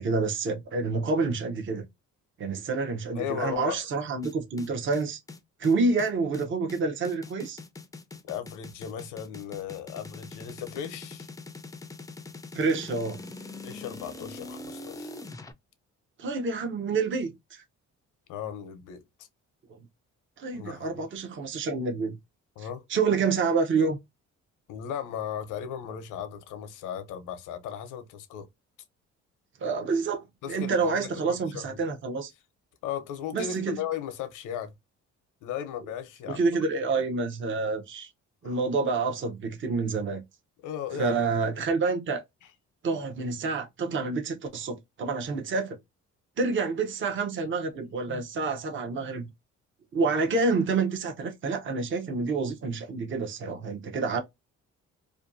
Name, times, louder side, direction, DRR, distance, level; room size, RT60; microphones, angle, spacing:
voice 1, 0.0-1.9 2.4-5.2 5.6-7.6 12.5-13.2 16.2-17.6 19.7-19.8 20.4-22.2 22.6-24.0 29.6-32.3 33.3-33.8 36.3-38.1 38.4-40.2 40.9-42.2 42.8-45.8 46.4-49.3 49.9-54.2, right 4 dB, 40° right, 0.6 m, -28 dB
voice 2, 3.2-3.8 8.3-11.3 13.6-15.1 18.3-19.0 20.5-21.0 22.6-22.8 24.7-28.5 30.4-31.8 32.8-34.7 35.4-36.4 38.4-38.6 40.6-41.2 48.1-48.2, left 9 dB, 90° left, 0.6 m, -36 dB
sound 1, 4.2-15.5, left 3 dB, 10° left, 0.3 m, -43 dB
2.5 x 2.2 x 2.5 m
cardioid pair, 90°, 30 cm